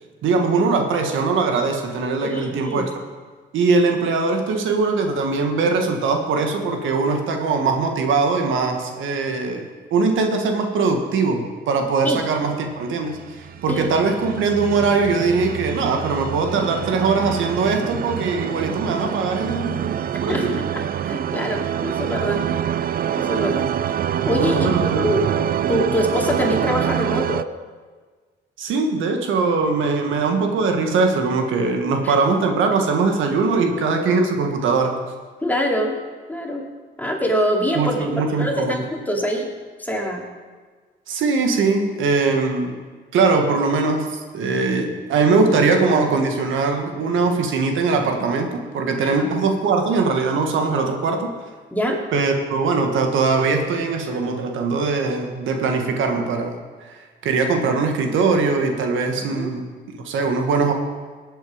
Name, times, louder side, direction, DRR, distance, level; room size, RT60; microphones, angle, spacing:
voice 1, 0.2-2.9 3.5-20.6 24.4-25.1 28.6-35.0 37.7-38.8 41.1-42.8 43.1-51.3 52.1-56.6 56.8-59.7 60.0-60.7, right 4 dB, 80° right, 4 dB, 1.5 m, -21 dB
voice 2, 2.2-2.8 12.0-12.2 13.7-13.9 20.3-22.4 23.2-23.7 24.2-24.7 25.0-25.2 25.7-27.5 32.0-32.1 35.4-36.0 36.3-36.6 37.0-38.0 38.4-39.5 39.8-40.2 49.0-49.1 51.7-52.0 59.2-59.5, equal, 10° left, 0 dB, 2.4 m, -24 dB
sound 1, 13.1-27.4, right 9 dB, 50° right, 0.5 m, -26 dB
18.0 x 8.4 x 5.0 m, 1.5 s
cardioid pair, 90°, 20 cm